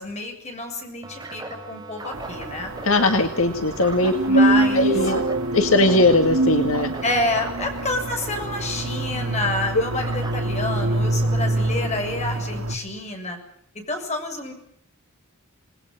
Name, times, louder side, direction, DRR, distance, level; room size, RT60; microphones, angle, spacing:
voice 1, 0.0-2.7 4.3-5.0 7.0-13.4 13.9-14.5, left 2 dB, 30° left, 4 dB, 7.0 m, -28 dB
sound 1, 1.0-12.0, right 2 dB, 20° right, 5.4 m, -39 dB
sound 2, 2.1-12.8, right 1 dB, 85° right, 2.1 m, -29 dB
voice 2, 2.8-4.1 4.7-5.2 5.5-6.9, left 2 dB, 65° left, 6 dB, 1.9 m, -19 dB
sound 3, 4.0-7.4, right 2 dB, 70° right, 3.3 m, -23 dB
28.0 x 20.0 x 7.6 m, 0.73 s
head